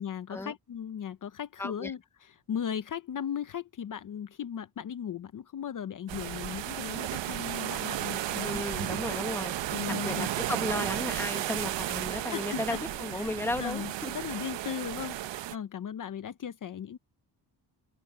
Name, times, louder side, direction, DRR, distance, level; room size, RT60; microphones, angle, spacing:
voice 1, 0.0-9.0 9.7-10.3 12.3-12.8 13.1-15.2 15.5-17.0, left 8 dB, 50° left, 0.7 m, -37 dB
voice 2, 1.6-1.9 8.4-9.5 9.9-14.1, left 2 dB, 5° left, 1.0 m, -35 dB
sound 1, 6.1-15.5, right 13 dB, 85° right, 0.8 m, -34 dB
sound 2, 7.5-12.9, right 7 dB, 50° right, 1.9 m, -47 dB
open air
wide cardioid pair, 175°, 43 cm